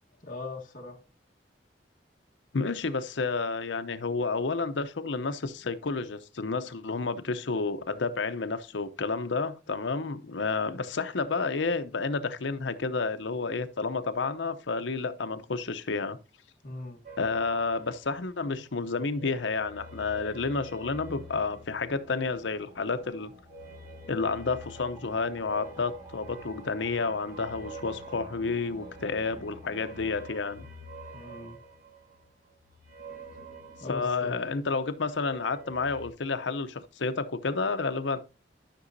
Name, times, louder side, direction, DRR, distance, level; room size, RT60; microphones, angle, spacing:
voice 1, 0.2-1.0 16.6-17.0 31.1-31.6 33.8-34.4, left 2 dB, 50° left, 1.4 m, -40 dB
voice 2, 2.5-16.2 17.2-23.3 24.1-30.6 33.9-38.2, left 4 dB, 85° left, 0.8 m, -30 dB
sound 1, 17.0-18.7 19.0-22.5 23.4-34.8 35.1-36.1, right 1 dB, 45° right, 1.3 m, -47 dB
sound 2, 19.9-30.2, right 1 dB, 15° right, 2.4 m, -53 dB
12.5 x 6.1 x 2.6 m
head